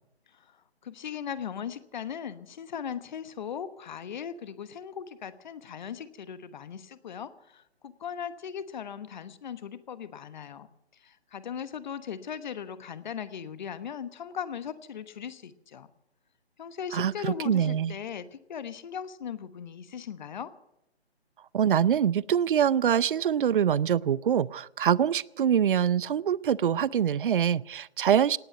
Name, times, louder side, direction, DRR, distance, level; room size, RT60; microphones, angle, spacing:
voice 1, 0.8-10.7 11.0-15.9 16.6-20.5, left 8 dB, 45° left, 14 dB, 1.1 m, -38 dB
voice 2, 16.9-18.0 21.5-28.4, right 9 dB, 55° right, 23 dB, 0.5 m, -24 dB
18.0 x 8.9 x 9.0 m, 0.85 s
figure-of-eight pair, 150°, 33 cm